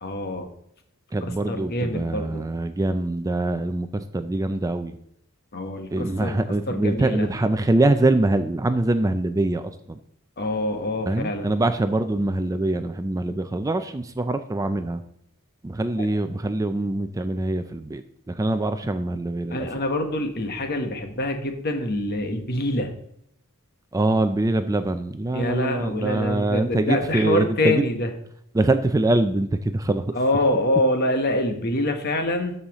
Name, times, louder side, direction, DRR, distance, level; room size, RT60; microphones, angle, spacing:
voice 1, 0.0-0.5 1.5-2.4 5.5-6.4 6.7-7.3 10.4-11.5 16.0-16.1 19.5-22.9 25.3-28.1 30.1-32.5, left 1 dB, 45° left, 5 dB, 1.2 m, -25 dB
voice 2, 1.1-5.0 5.9-10.0 11.1-15.0 15.6-19.8 23.9-27.8 28.5-30.2, right 2 dB, 15° right, 9 dB, 0.4 m, -24 dB
13.0 x 5.6 x 3.0 m, 0.74 s
head